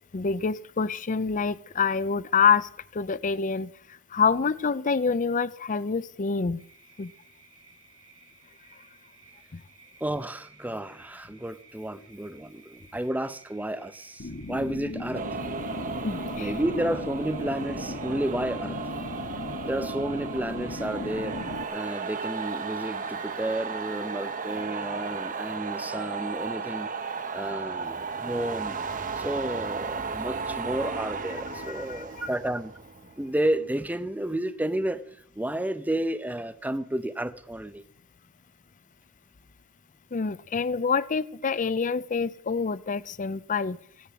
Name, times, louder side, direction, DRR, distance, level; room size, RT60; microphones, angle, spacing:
voice 1, 0.1-3.7 4.1-6.6 7.0-7.1 16.0-16.5 31.5-32.3 40.1-43.8, left 5 dB, 35° left, 17 dB, 0.5 m, -26 dB
sound 1, 6.6-25.3, right 5 dB, 90° right, 5.4 m, -57 dB
voice 2, 10.0-15.2 16.4-18.8 19.7-21.4 21.7-26.9 27.3-28.8 29.2-32.7 33.2-35.0 35.4-37.8, right 1 dB, 5° right, 13 dB, 0.6 m, -31 dB
sound 2, 14.2-21.6, left 2 dB, 55° left, 1.3 m, -37 dB
sound 3, 15.1-33.7, right 5 dB, 40° right, 0.8 m, -35 dB
16.0 x 10.0 x 7.6 m, 0.67 s
head